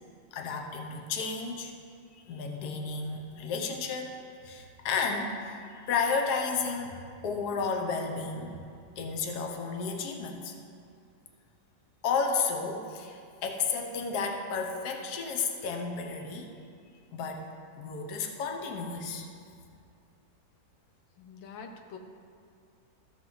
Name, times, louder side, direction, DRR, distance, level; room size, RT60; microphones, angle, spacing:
voice 1, 0.3-1.7 2.3-8.6 9.0-10.5 12.0-16.5 17.1-17.5 17.8-19.3, left 5 dB, 65° left, 3 dB, 1.3 m, -32 dB
voice 2, 21.2-22.0, left 5 dB, 85° left, 4 dB, 1.4 m, -45 dB
14.0 x 6.0 x 3.9 m, 2.3 s
omnidirectional pair, 1.9 m